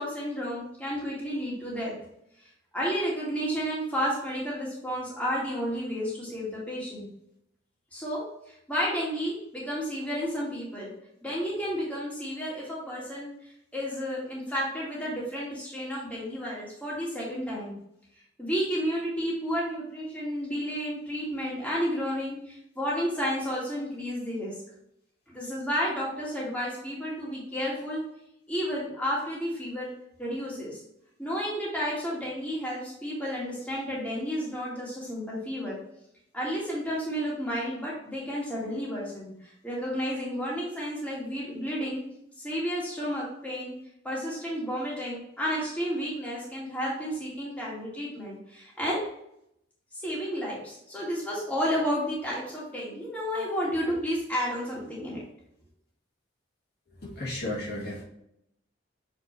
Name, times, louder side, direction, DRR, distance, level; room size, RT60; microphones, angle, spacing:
voice 1, 0.0-1.9 2.4-7.1 7.9-10.9 11.2-17.7 18.4-24.5 25.3-28.0 28.5-29.9 30.2-30.8 31.2-35.8 36.3-42.0 42.4-43.7 44.0-49.0 49.9-55.2, equal, 5° left, -6 dB, 1.9 m, -31 dB
voice 2, 57.0-58.0, left 1 dB, 55° left, -4 dB, 1.9 m, -34 dB
7.0 x 4.4 x 3.1 m, 0.76 s
head